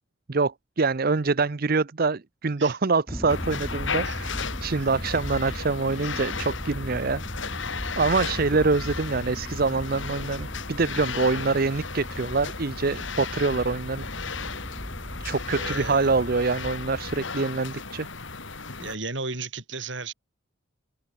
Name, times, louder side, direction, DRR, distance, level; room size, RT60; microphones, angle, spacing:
voice 1, 0.3-7.2 8.0-14.1 15.2-18.1, right 4 dB, 50° right, 0.7 m, -25 dB
sound 1, 3.1-17.2, equal, 10° left, 2.3 m, -37 dB
sound 2, 3.3-19.0, left 5 dB, 70° left, 3.1 m, -35 dB
voice 2, 15.5-16.1 18.8-20.1, right 3 dB, 65° right, 4.8 m, -34 dB
head